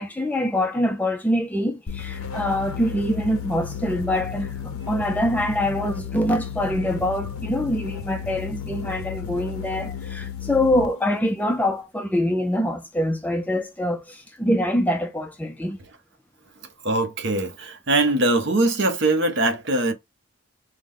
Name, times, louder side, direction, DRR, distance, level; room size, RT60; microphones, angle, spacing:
voice 1, 0.0-15.8, left 1 dB, 5° left, 0.4 m, -24 dB
sound 1, 1.9-11.0, left 7 dB, 75° left, 0.7 m, -33 dB
voice 2, 16.8-19.9, right 2 dB, 55° right, 0.9 m, -22 dB
4.8 x 2.1 x 3.7 m
head